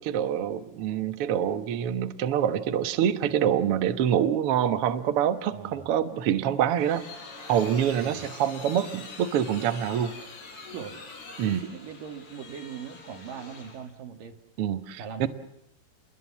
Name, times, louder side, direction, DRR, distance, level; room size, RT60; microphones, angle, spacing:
voice 1, 0.0-7.0 7.5-10.1 11.4-11.6 14.6-15.3, right 9 dB, 90° right, 9 dB, 1.2 m, -26 dB
voice 2, 5.5-5.9 8.0-8.2 10.7-10.9 11.4-14.4 15.0-15.3, right 7 dB, 60° right, 5 dB, 3.6 m, -40 dB
Rusty Spring Phase, 6.4-13.9, left 3 dB, 80° left, 7.1 m, -44 dB
28.5 x 22.0 x 7.4 m, 0.78 s
omnidirectional pair, 4.6 m